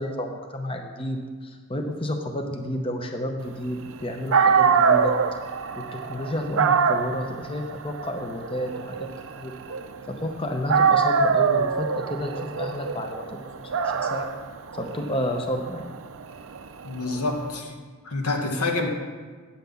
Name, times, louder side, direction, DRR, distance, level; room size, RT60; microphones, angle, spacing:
voice 1, 0.0-5.5 5.8-9.1 9.4-9.5 10.1-14.3 14.8-16.0, left 1 dB, 25° left, 3 dB, 0.7 m, -31 dB
Dog, 4.0-4.1 4.3-10.3 10.7-17.5, right 6 dB, 60° right, 0.5 m, -24 dB
voice 2, 16.8-17.7 18.0-18.9, left 2 dB, 80° left, 2 dB, 1.4 m, -27 dB
9.0 x 5.9 x 7.0 m, 1.5 s
head